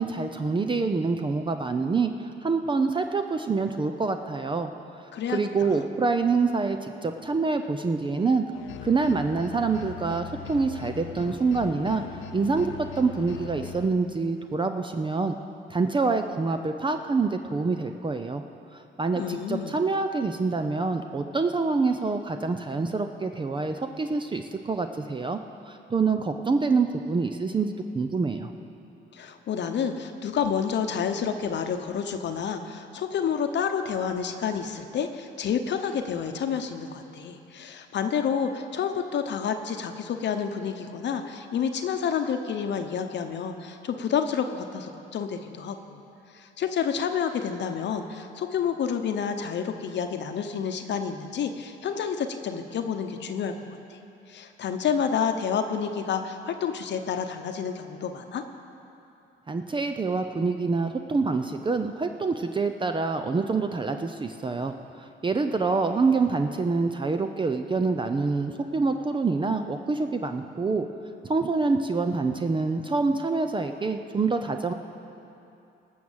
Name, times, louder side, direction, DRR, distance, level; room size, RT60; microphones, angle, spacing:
voice 1, 0.0-4.7 5.3-8.4 8.8-12.0 12.3-15.3 15.7-18.4 18.7-25.4 25.7-28.5 59.5-70.9 71.2-74.7, right 4 dB, 25° right, 7 dB, 0.6 m, -26 dB
sound 1, 8.5-13.9, left 11 dB, 90° left, 0.7 m, -40 dB
voice 2, 19.1-19.7 29.1-46.0 46.3-54.0 54.3-58.4, left 7 dB, 65° left, 6 dB, 0.9 m, -29 dB
18.5 x 6.4 x 7.3 m, 2.8 s
cardioid pair, 90°, 20 cm